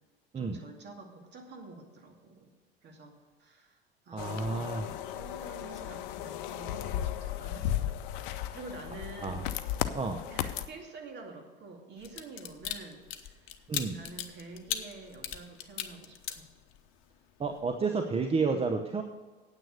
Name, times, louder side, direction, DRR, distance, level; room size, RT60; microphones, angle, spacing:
voice 1, 0.3-2.5 2.8-3.8 4.0-9.5 10.3-13.5 13.9-16.5 18.5-18.6, right 3 dB, 35° right, 2 dB, 2.4 m, -48 dB
voice 2, 4.1-4.9 9.2-9.4 9.9-10.2 13.7-14.0 17.4-19.0, right 4 dB, 20° right, 5 dB, 0.8 m, -30 dB
sound 1, 4.2-10.7, left 11 dB, 60° left, 0.8 m, -35 dB
sound 2, 12.0-17.0 17.4-17.6, left 10 dB, 45° left, 1.1 m, -38 dB
9.2 x 8.5 x 6.4 m, 1.4 s
figure-of-eight pair, 75°, 30 cm